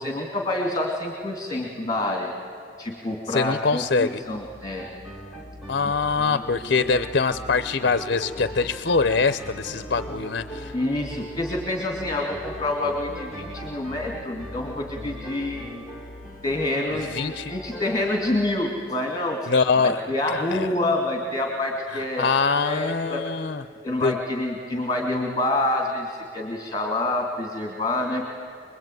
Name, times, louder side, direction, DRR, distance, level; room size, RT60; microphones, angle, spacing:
voice 1, 0.0-2.3 2.8-4.9 5.8-5.9 6.3-6.4 10.7-15.8 16.4-19.5 19.8-22.3 22.5-23.2 23.8-28.2, left 1 dB, 20° left, 2 dB, 2.6 m, -27 dB
voice 2, 3.3-4.2 5.7-10.7 16.9-17.5 19.5-20.0 20.3-20.7 22.2-23.6 24.0-24.1, left 4 dB, 55° left, 12 dB, 0.7 m, -23 dB
sound 1, 4.3-18.4, left 2 dB, 60° right, 7.8 m, -44 dB
sound 2, 4.8-18.4, right 1 dB, ahead, 3.1 m, -40 dB
26.0 x 21.5 x 9.3 m, 2.6 s
head